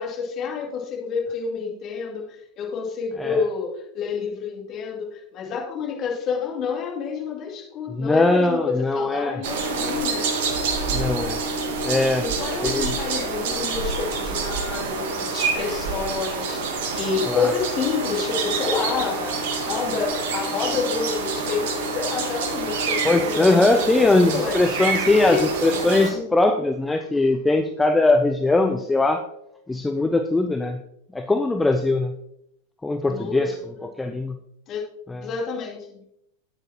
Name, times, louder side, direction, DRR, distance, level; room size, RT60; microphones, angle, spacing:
voice 1, 0.0-10.3 12.2-23.8 24.1-24.6 25.2-25.5 26.1-26.3 33.1-33.4 33.8-34.1 34.7-34.8 35.2-36.0, left 6 dB, 35° left, 0 dB, 2.5 m, -29 dB
voice 2, 7.9-9.4 10.9-11.4 11.8-12.3 12.6-12.9 17.3-17.5 23.0-29.2 29.7-30.8 31.1-32.1 32.8-33.5 33.8-34.4 35.1-35.2, left 2 dB, 10° left, 6 dB, 0.5 m, -21 dB
sound 1, 9.4-26.1, right 4 dB, 55° right, 1.4 m, -27 dB
9.0 x 8.5 x 2.9 m, 0.75 s
figure-of-eight pair, 90°, 0 cm